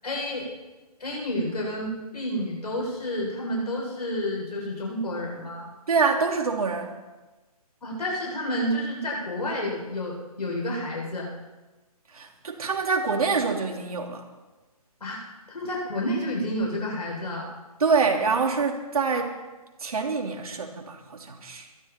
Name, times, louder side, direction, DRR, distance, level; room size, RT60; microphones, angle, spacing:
voice 1, 0.0-0.5 1.0-5.7 7.8-11.3 15.0-15.2 15.5-17.5, equal, 85° left, -2 dB, 7.4 m, -30 dB
voice 2, 5.9-6.9 12.1-14.2 17.8-19.4 19.8-21.7, right 5 dB, 65° right, 2 dB, 3.2 m, -25 dB
22.0 x 13.5 x 4.5 m, 1.2 s
hypercardioid pair, 160°, 20 cm